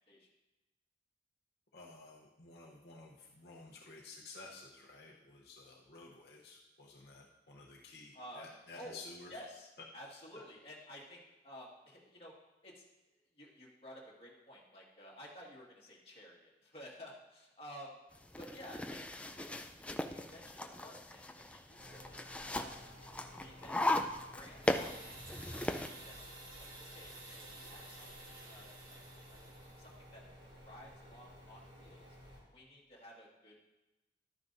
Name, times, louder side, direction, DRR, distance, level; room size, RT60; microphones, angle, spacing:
voice 1, 1.7-9.3 10.4-10.5, left 3 dB, 60° left, -2 dB, 0.9 m, -53 dB
voice 2, 8.1-8.5 8.8-9.0 9.3-12.3 12.6-12.8 13.4-18.0 18.4-19.0 19.3-19.5 19.8-22.2 22.5-22.8 23.4-23.9 24.3-29.5 29.8-30.2 30.6-32.2 32.5-33.6, equal, 30° left, -4 dB, 1.9 m, -53 dB
sound 1, 18.1-25.9, left 1 dB, 5° left, 0.3 m, -38 dB
sound 2, 21.8-32.4, equal, 85° right, 3.0 m, -55 dB
sound 3, 24.6-30.0, right 2 dB, 50° right, 1.9 m, -53 dB
12.0 x 9.4 x 2.7 m, 1.0 s
head